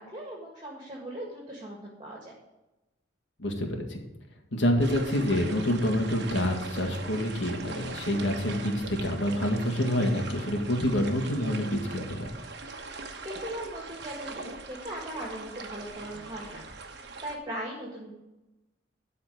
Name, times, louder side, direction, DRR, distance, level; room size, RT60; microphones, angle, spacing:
voice 1, 0.0-2.3 13.2-18.1, right 1 dB, 25° right, -3 dB, 2.0 m, -39 dB
voice 2, 3.4-4.0 4.5-12.3, equal, 75° left, 2 dB, 2.0 m, -27 dB
sound 1, 4.8-17.4, right 3 dB, 60° right, 1.1 m, -41 dB
12.5 x 4.3 x 7.8 m, 0.99 s
head